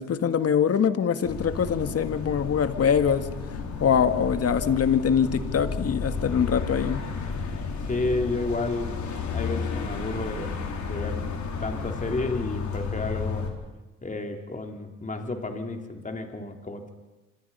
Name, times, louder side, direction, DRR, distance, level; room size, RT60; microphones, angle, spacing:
voice 1, 0.0-3.3 3.8-7.0, left 7 dB, 55° left, 9 dB, 1.8 m, -23 dB
sound 1, 1.2-13.5, left 5 dB, 70° left, 4.5 m, -32 dB
voice 2, 7.8-8.9 9.3-10.5 10.8-11.2 11.6-13.5 14.0-16.9, left 2 dB, 25° left, 4 dB, 3.4 m, -31 dB
27.0 x 26.0 x 5.6 m, 1.1 s
cardioid pair, 90°, 30 cm